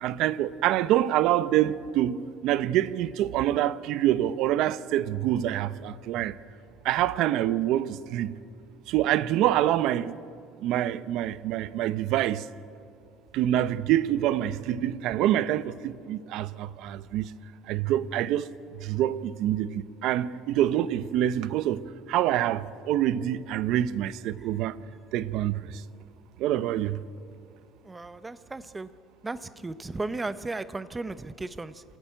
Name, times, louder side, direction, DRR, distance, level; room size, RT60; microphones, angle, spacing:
voice 1, 0.0-6.4 6.8-8.4 8.9-10.2 10.6-12.5 13.3-17.3 17.7-18.5 18.8-24.8 25.1-25.7 26.4-27.0, right 12 dB, 55° right, 0.7 m, -26 dB
voice 2, 27.8-28.9 29.2-31.8, right 2 dB, 10° right, 0.6 m, -35 dB
27.5 x 14.0 x 9.2 m
cardioid pair, 170°, 0 cm